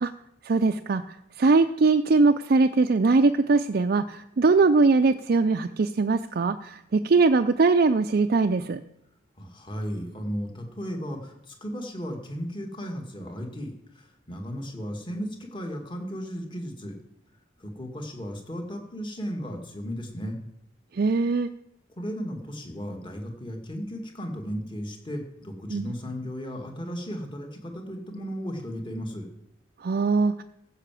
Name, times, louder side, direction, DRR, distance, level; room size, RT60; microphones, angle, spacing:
voice 1, 0.4-8.8 20.9-21.5 25.7-25.9 29.8-30.4, right 3 dB, 50° right, 7 dB, 0.5 m, -21 dB
voice 2, 9.4-16.9 17.6-20.4 22.0-29.3, equal, 25° left, 2 dB, 2.0 m, -35 dB
15.0 x 5.7 x 7.5 m, 0.83 s
head